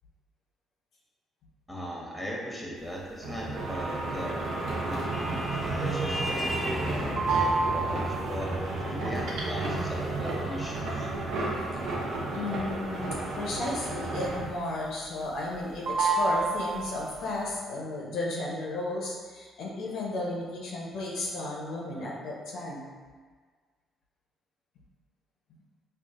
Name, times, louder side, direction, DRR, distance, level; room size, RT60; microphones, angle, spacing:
voice 1, 1.7-4.4 4.8-11.1, equal, ahead, -3 dB, 1.0 m, -38 dB
sound 1, 3.2-14.7 15.0-15.6 15.8-17.2, right 3 dB, 65° right, 0.6 m, -31 dB
Vehicle horn car horn honking, 5.1-13.5, equal, 20° left, 0.5 m, -39 dB
voice 2, 12.3-22.9, left 2 dB, 65° left, -3 dB, 0.6 m, -34 dB
4.5 x 2.4 x 2.4 m, 1.5 s
hypercardioid pair, 45°, 0 cm